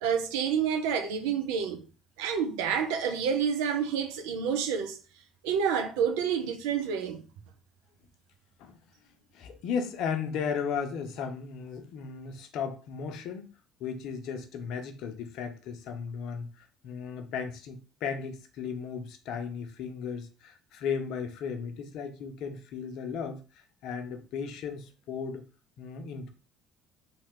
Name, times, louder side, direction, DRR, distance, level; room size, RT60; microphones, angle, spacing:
voice 1, 0.0-1.8 2.2-5.0 5.4-7.2, right 7 dB, 75° right, 0.6 m, -28 dB
voice 2, 9.3-13.5 13.8-25.4 25.8-26.3, left 6 dB, 65° left, 0.7 m, -35 dB
3.2 x 2.3 x 3.7 m
hypercardioid pair, 60°, 0 cm